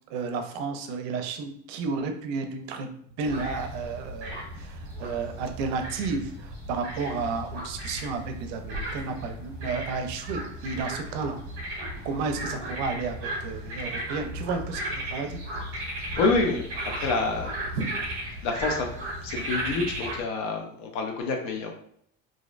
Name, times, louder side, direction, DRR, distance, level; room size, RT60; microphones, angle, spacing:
voice 1, 0.1-2.9 3.2-11.4 12.0-15.4 17.8-17.9, right 4 dB, 75° right, 6 dB, 0.5 m, -32 dB
sound 1, 3.3-20.2, right 1 dB, 45° right, 0.9 m, -35 dB
voice 2, 16.2-17.5 18.4-18.9 19.2-21.7, left 3 dB, 65° left, 2 dB, 0.6 m, -27 dB
2.6 x 2.0 x 2.4 m, 0.65 s
cardioid pair, 160°, 31 cm